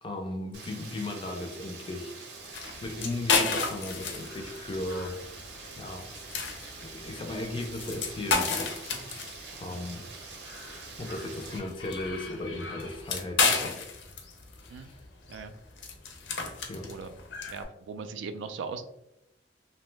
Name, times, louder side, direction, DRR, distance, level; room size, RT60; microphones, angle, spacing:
voice 1, 0.0-2.3 2.8-5.2 5.8-6.1 6.8-9.1 9.5-10.1 11.0-13.8 14.8-15.0 16.7-17.0, left 2 dB, 30° left, 4 dB, 0.4 m, -36 dB
Rain, 0.5-11.6, right 4 dB, 65° right, 0.7 m, -45 dB
sound 1, 2.3-17.6, left 4 dB, 80° left, 0.5 m, -33 dB
voice 2, 17.5-18.8, right 5 dB, 85° right, 10 dB, 0.3 m, -39 dB
2.7 x 2.1 x 3.1 m, 0.86 s
head